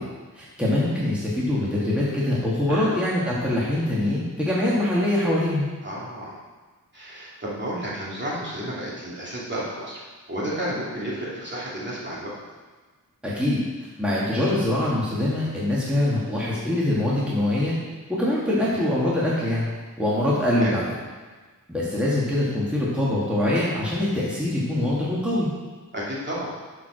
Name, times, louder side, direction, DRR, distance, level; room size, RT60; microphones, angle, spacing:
voice 1, 0.4-5.7 13.2-13.6 14.0-17.8 18.2-19.7 20.0-20.8 21.7-25.5, left 1 dB, 5° right, -7 dB, 2.0 m, -23 dB
voice 2, 2.7-3.0 5.8-6.4 6.9-10.0 10.3-12.3 20.5-20.7 25.9-26.5, right 1 dB, 35° right, -7 dB, 2.6 m, -31 dB
7.6 x 4.8 x 6.4 m, 1.4 s
wide cardioid pair, 75°, 32 cm